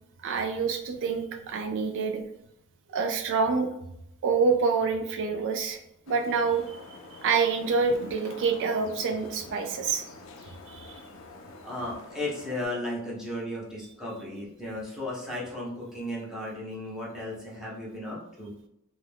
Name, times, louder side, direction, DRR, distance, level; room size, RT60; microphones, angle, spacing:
voice 1, 0.2-2.2 2.9-3.7 4.2-5.8 6.1-10.1 10.7-11.0, right 5 dB, 55° right, 6 dB, 0.3 m, -27 dB
sound 1, 6.1-12.7, left 3 dB, 65° left, 0.4 m, -47 dB
voice 2, 11.6-18.5, left 1 dB, ahead, -5 dB, 0.7 m, -35 dB
2.3 x 2.2 x 3.3 m, 0.79 s
head